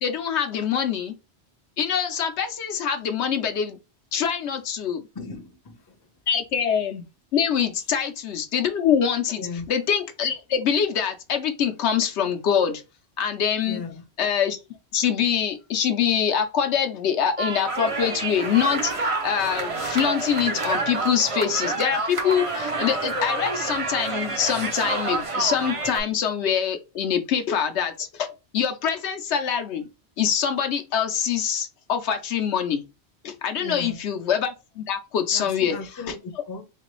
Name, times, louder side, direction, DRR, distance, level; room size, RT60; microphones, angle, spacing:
voice 1, 0.0-1.1 1.8-3.8 4.1-5.0 6.3-7.0 7.3-12.8 13.2-13.8 14.2-14.6 14.9-28.3 28.5-29.9 30.2-32.8 33.2-35.8, left 8 dB, 80° left, 0.9 m, -24 dB
voice 2, 5.1-6.0 9.3-9.6 13.7-14.0 33.6-34.0 35.3-36.6, left 3 dB, 25° left, 0.6 m, -36 dB
sound 1, 17.4-26.0, right 3 dB, 40° right, 0.6 m, -28 dB
3.8 x 3.3 x 3.0 m
omnidirectional pair, 1.1 m